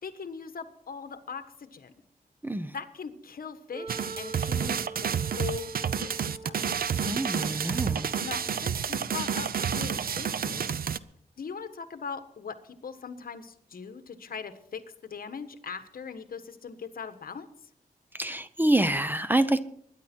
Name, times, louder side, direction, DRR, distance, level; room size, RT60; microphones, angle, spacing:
voice 1, 0.0-1.9 2.7-6.7 8.2-10.7 11.4-17.5, left 6 dB, 65° left, 10 dB, 1.4 m, -40 dB
Wind instrument woodwind instrument, 3.7-8.8, right 4 dB, 35° right, 2.6 m, -44 dB
sound 1, 3.9-11.0, right 7 dB, 70° right, 0.6 m, -30 dB
voice 2, 7.0-8.2 18.1-19.6, right 1 dB, 10° right, 12 dB, 0.7 m, -26 dB
22.0 x 10.0 x 4.5 m, 0.70 s
wide cardioid pair, 150°, 16 cm